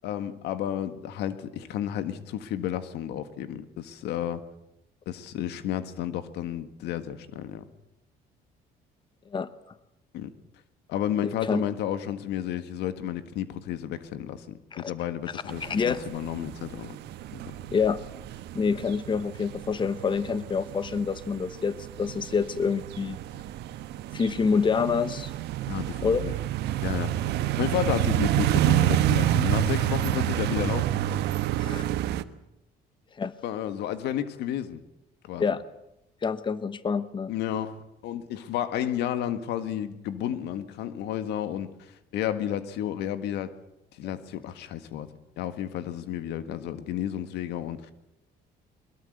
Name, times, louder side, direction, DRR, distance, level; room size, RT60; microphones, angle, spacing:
voice 1, 0.0-4.4 5.0-7.6 10.1-10.3 10.9-17.0 17.3-17.5 25.6-26.3 26.8-27.2 27.6-30.9 33.4-34.8 35.2-35.5 37.3-43.6 44.0-47.9, left 10 dB, 80° left, 12 dB, 1.8 m, -32 dB
voice 2, 11.2-11.6 14.7-14.9 15.3-16.1 17.7-18.0 18.5-23.2 24.1-25.3 26.0-26.2 31.6-31.9 33.2-33.3 35.4-35.6 36.2-37.3, left 5 dB, 30° left, 15 dB, 1.0 m, -27 dB
sound 1, 15.5-32.2, right 13 dB, 80° right, 1.2 m, -29 dB
22.0 x 21.5 x 8.0 m, 0.86 s
cardioid pair, 110°, 17 cm